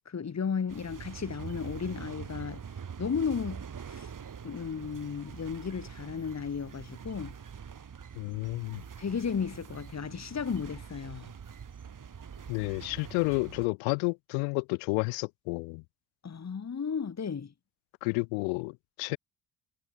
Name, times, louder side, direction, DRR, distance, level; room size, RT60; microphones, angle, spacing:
voice 1, 0.0-2.6 3.0-4.1 4.4-7.3 9.0-11.3 16.2-17.5, left 6 dB, 35° left, 3.4 m, -34 dB
sound 1, 0.7-13.7, right 7 dB, 45° right, 6.6 m, -44 dB
voice 2, 8.2-8.8 12.5-15.8 18.0-19.2, left 36 dB, 85° left, 5.7 m, -31 dB
supercardioid pair, 65°, 44 cm